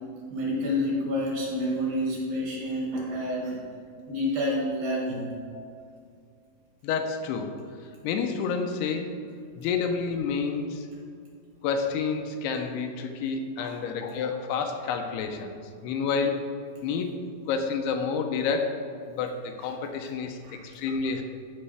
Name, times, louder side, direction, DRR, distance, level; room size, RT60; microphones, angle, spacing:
voice 1, 0.3-3.6 4.1-5.3 13.6-13.8 20.4-20.6, left 1 dB, 60° right, -4 dB, 3.5 m, -28 dB
voice 2, 6.8-7.5 8.0-9.2 9.6-10.8 11.6-15.6 15.8-16.4 16.8-17.1 17.5-18.8 19.1-21.2, left 5 dB, 80° left, 5 dB, 2.6 m, -29 dB
15.0 x 5.3 x 3.4 m, 2.3 s
omnidirectional pair, 4.7 m